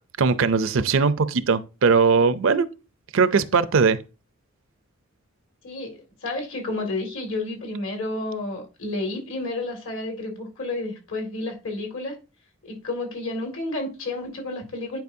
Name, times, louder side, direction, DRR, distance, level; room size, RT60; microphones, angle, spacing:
voice 1, 0.0-2.7 3.1-4.0, right 5 dB, 65° right, 0.5 m, -20 dB
voice 2, 5.6-12.2 12.6-15.0, left 2 dB, 70° left, 2.2 m, -31 dB
9.2 x 5.0 x 2.7 m
head